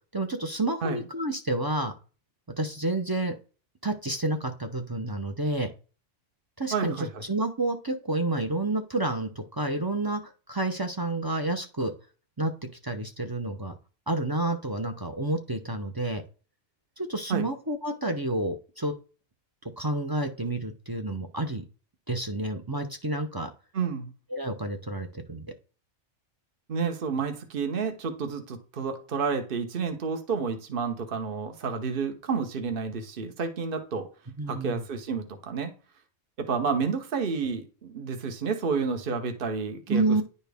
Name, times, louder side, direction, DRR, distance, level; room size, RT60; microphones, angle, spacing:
voice 1, 0.1-1.9 2.6-3.3 3.8-5.7 6.6-10.2 10.5-11.9 12.4-12.5 12.8-13.7 14.1-16.2 17.0-18.9 19.8-21.6 22.1-23.5 24.3-25.4 34.4-34.8 39.9-40.2, right 2 dB, 25° right, 4 dB, 0.5 m, -29 dB
voice 2, 6.7-7.2 17.3-17.5 23.7-24.1 26.7-34.1 34.5-35.7 36.4-40.2, right 5 dB, 50° right, 6 dB, 1.2 m, -30 dB
10.0 x 4.3 x 3.4 m, 0.36 s
omnidirectional pair, 1.3 m